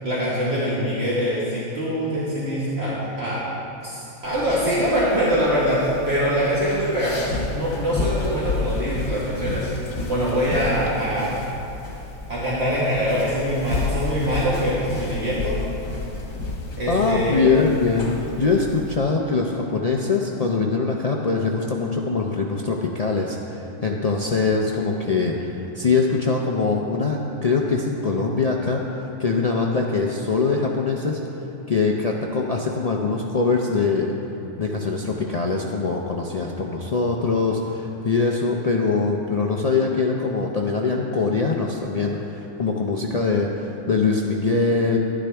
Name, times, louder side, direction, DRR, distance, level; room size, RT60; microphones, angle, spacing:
voice 1, 0.0-3.4 3.8-9.7 10.1-11.4 12.3-15.6 16.8-17.4, equal, 50° right, -9 dB, 1.7 m, -23 dB
sound 1, 4.2-19.0, left 2 dB, 85° left, 1.7 m, -31 dB
voice 2, 16.9-31.2 31.7-34.1 34.6-45.0, left 4 dB, 55° left, 0 dB, 0.4 m, -23 dB
12.0 x 9.8 x 3.4 m, 2.9 s
omnidirectional pair, 1.4 m